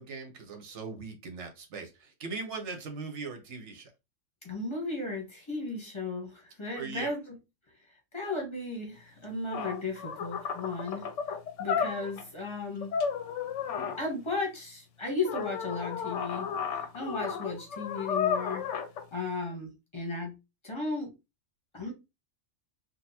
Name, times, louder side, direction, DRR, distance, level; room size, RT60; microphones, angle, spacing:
voice 1, 0.0-1.9 2.2-3.9 6.8-7.1, right 4 dB, 65° right, 1.2 m, -39 dB
voice 2, 4.4-7.4 8.1-11.1 11.6-12.9 14.0-16.5 16.9-18.6 19.1-20.3 20.6-21.1 21.7-21.9, left 3 dB, 25° left, 1.1 m, -35 dB
sound 1, 9.2-9.3 9.5-12.3 12.8-14.0 15.2-19.0, left 7 dB, 75° left, 0.9 m, -33 dB
3.8 x 2.4 x 2.8 m
omnidirectional pair, 1.3 m